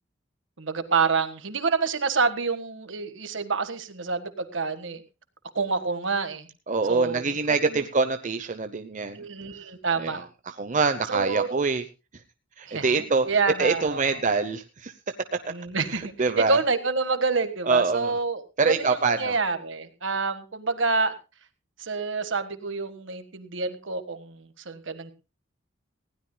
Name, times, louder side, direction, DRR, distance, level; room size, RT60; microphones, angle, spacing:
voice 1, 0.6-5.0 5.5-6.5 6.9-7.2 7.7-7.8 9.1-10.2 11.1-11.6 12.7-13.0 13.2-14.0 15.5-21.1 21.8-25.1, right 4 dB, 70° right, 10 dB, 1.5 m, -27 dB
voice 2, 6.7-9.2 9.5-9.6 9.9-11.8 12.6-13.3 13.6-14.9 15.3-15.5 15.9-16.6 17.6-18.1 18.6-19.4, right 4 dB, 40° right, 8 dB, 0.8 m, -25 dB
19.5 x 16.0 x 2.2 m, 0.29 s
head